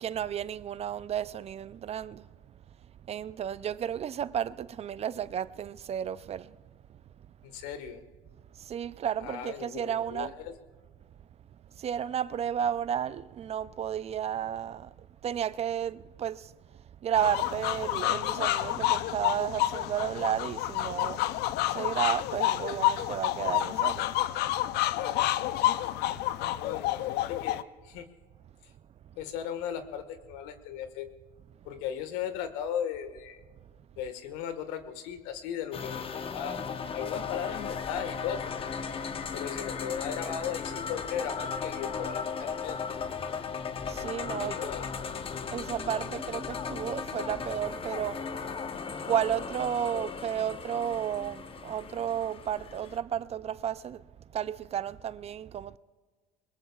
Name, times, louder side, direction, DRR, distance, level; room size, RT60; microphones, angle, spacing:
voice 1, 0.0-2.3 3.1-6.6 6.9-7.0 8.5-10.3 11.7-21.3 21.7-24.2 26.1-26.2 43.4-43.6 43.8-44.7 45.5-48.5 49.0-54.1 54.3-55.8, right 9 dB, 35° right, 0.4 m, -33 dB
voice 2, 7.4-8.0 9.2-10.5 25.0-25.6 26.6-28.1 29.1-31.1 31.6-33.4 34.0-36.7 36.9-38.6 39.3-42.8 44.2-44.9 49.9-50.2, left 8 dB, 80° left, 1.6 m, -37 dB
sound 1, 17.1-27.6, left 14 dB, 60° left, 0.6 m, -29 dB
sound 2, 35.7-53.0, left 6 dB, 30° left, 0.9 m, -36 dB
22.0 x 21.0 x 2.4 m
supercardioid pair, 100°, 19 cm